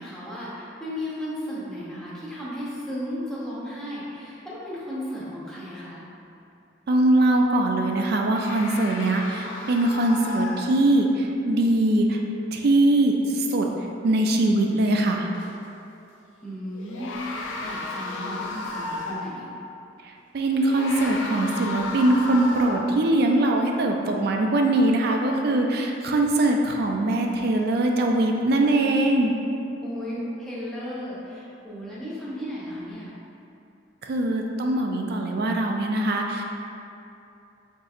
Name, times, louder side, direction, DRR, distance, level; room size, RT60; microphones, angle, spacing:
voice 1, 0.0-6.0 16.4-19.5 29.8-33.1, equal, 5° left, -9 dB, 0.7 m, -35 dB
voice 2, 6.9-12.2 12.5-13.7 14.0-15.3 20.3-29.3 34.0-36.4, right 1 dB, 55° right, 2 dB, 0.3 m, -22 dB
sound 1, 8.3-11.1 15.3-15.5 16.8-19.4 20.5-23.0, left 2 dB, 80° left, 0.4 m, -34 dB
5.0 x 2.6 x 2.4 m, 2.7 s
head